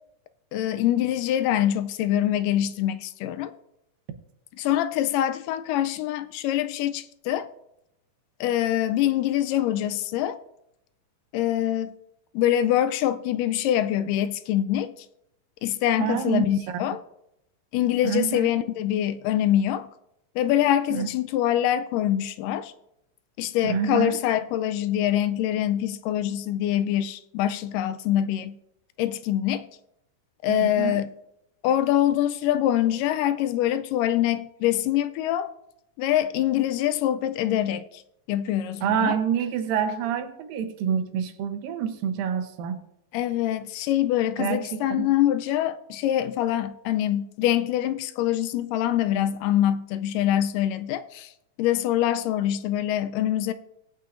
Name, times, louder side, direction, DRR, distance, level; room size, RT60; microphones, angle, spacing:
voice 1, 0.5-3.5 4.6-7.5 8.4-10.4 11.3-11.9 12.3-14.9 15.6-17.0 17.7-19.9 20.4-22.7 23.4-28.6 29.0-29.7 30.4-31.1 31.6-35.5 36.0-38.0 38.3-39.2 43.1-51.3 51.6-53.5, left 12 dB, 80° left, 2.1 m, -24 dB
voice 2, 16.0-16.8 18.0-18.6 20.9-21.1 23.6-24.2 30.5-31.0 38.8-42.8 44.4-45.1, right 8 dB, 85° right, 2.6 m, -27 dB
19.5 x 8.7 x 2.6 m
omnidirectional pair, 3.9 m